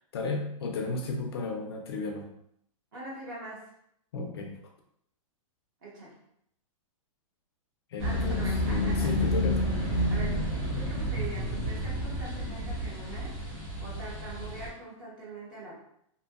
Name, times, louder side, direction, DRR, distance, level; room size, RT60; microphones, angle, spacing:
voice 1, 0.0-2.3 4.1-4.6 7.9-9.7, left 3 dB, 45° left, 2 dB, 0.4 m, -34 dB
voice 2, 2.9-3.7 5.8-6.1 8.0-9.3 9.8-13.4 13.8-15.7, right 2 dB, 40° right, -4 dB, 0.9 m, -43 dB
sound 1, 8.0-14.7, equal, 15° right, 0.5 m, -30 dB
2.6 x 2.6 x 2.4 m, 0.73 s
hypercardioid pair, 175°, 18 cm